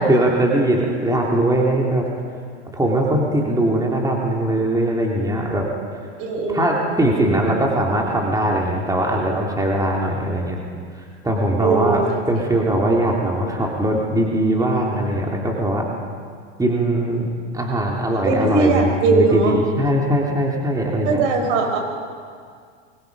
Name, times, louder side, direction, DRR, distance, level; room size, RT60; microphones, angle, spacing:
voice 1, 0.0-2.1 2.7-5.7 6.5-10.6 10.9-15.9 16.6-17.3 17.5-21.2, right 1 dB, 10° right, -2 dB, 2.9 m, -20 dB
voice 2, 6.2-6.9 11.6-12.2 18.2-19.6 21.0-21.8, right 3 dB, 60° right, 3 dB, 5.4 m, -20 dB
23.5 x 22.0 x 5.4 m, 2.1 s
hypercardioid pair, 105°, 37 cm